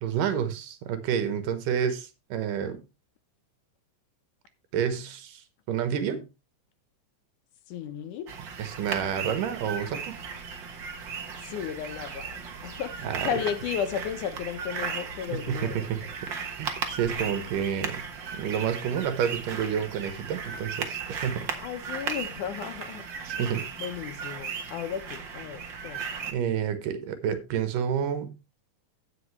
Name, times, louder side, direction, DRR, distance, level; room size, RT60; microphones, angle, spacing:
voice 1, 0.0-2.8 4.7-6.3 8.6-10.2 13.0-13.3 15.3-16.0 16.6-18.0 18.3-21.5 23.3-23.7 26.3-28.3, right 8 dB, 80° right, 2.8 m, -29 dB
voice 2, 7.7-8.3 11.4-15.9 21.6-23.1 23.4-26.3, left 9 dB, 75° left, 2.3 m, -34 dB
sound 1, 8.3-26.3, right 6 dB, 55° right, 1.4 m, -36 dB
16.5 x 5.5 x 3.2 m
omnidirectional pair, 3.8 m